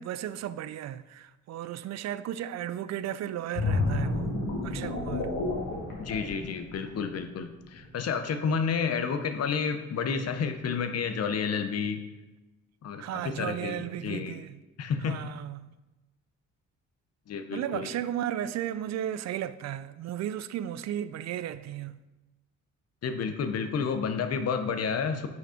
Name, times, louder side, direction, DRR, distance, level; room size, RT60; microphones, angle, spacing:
voice 1, 0.0-4.3 4.6-5.4 13.0-14.6 15.0-15.7 17.5-22.0, right 11 dB, 60° right, 0.4 m, -35 dB
sound 1, 3.5-7.1 7.6-7.8, left 2 dB, 80° left, 2.0 m, -30 dB
voice 2, 6.0-12.0 12.8-14.4 14.8-15.3 17.3-17.9 23.0-25.3, left 6 dB, 55° left, 0.8 m, -30 dB
6.4 x 5.4 x 5.0 m
cardioid pair, 90°, 30 cm